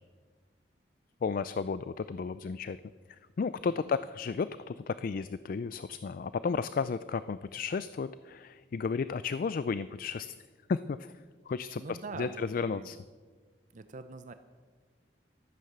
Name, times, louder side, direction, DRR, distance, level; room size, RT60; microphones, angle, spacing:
voice 1, 1.2-2.8 3.1-10.4 10.7-11.1 11.5-13.0, left 5 dB, 50° left, 15 dB, 0.3 m, -33 dB
voice 2, 11.8-12.9 13.7-14.3, right 3 dB, 45° right, 10 dB, 0.5 m, -44 dB
13.5 x 9.4 x 6.7 m, 1.5 s
head